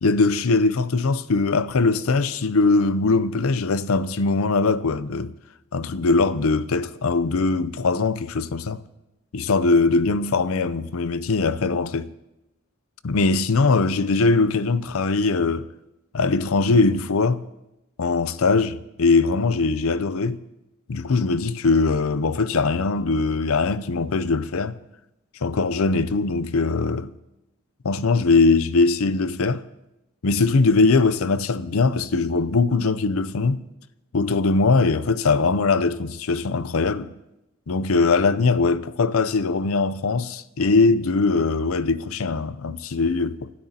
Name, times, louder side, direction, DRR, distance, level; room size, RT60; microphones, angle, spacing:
voice 1, 0.0-5.3 5.7-8.8 9.3-12.1 13.0-15.7 16.1-17.4 18.0-20.4 20.9-24.8 25.4-27.1 27.8-29.6 30.2-33.6 34.1-37.1 37.7-43.5, left 3 dB, 90° left, 0.6 m, -21 dB
29.0 x 12.5 x 2.9 m
head